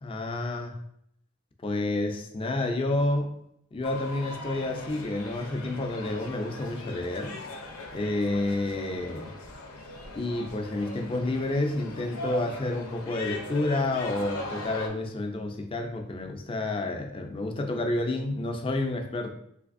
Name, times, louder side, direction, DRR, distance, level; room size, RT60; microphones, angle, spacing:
voice 1, 0.0-0.8 1.6-3.3 3.7-7.4 7.9-9.3 10.2-19.3, left 2 dB, 25° left, 4 dB, 0.4 m, -29 dB
sound 1, 3.8-14.9, left 2 dB, 85° left, 0.6 m, -40 dB
3.3 x 3.2 x 2.5 m, 0.74 s
head